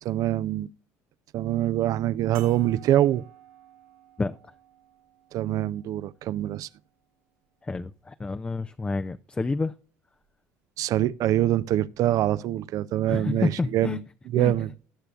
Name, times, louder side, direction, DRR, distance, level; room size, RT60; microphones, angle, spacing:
voice 1, 0.0-0.7 1.3-3.2 5.3-6.7 10.8-14.0 14.3-14.7, right 13 dB, 55° right, 0.5 m, -24 dB
sound 1, 2.3-7.1 7.9-8.0 10.2-10.3, right 10 dB, 90° right, 1.7 m, -53 dB
voice 2, 7.6-9.7 13.1-14.0 14.4-14.5, left 3 dB, 15° left, 0.4 m, -29 dB
19.5 x 6.7 x 2.4 m
supercardioid pair, 85°, 7 cm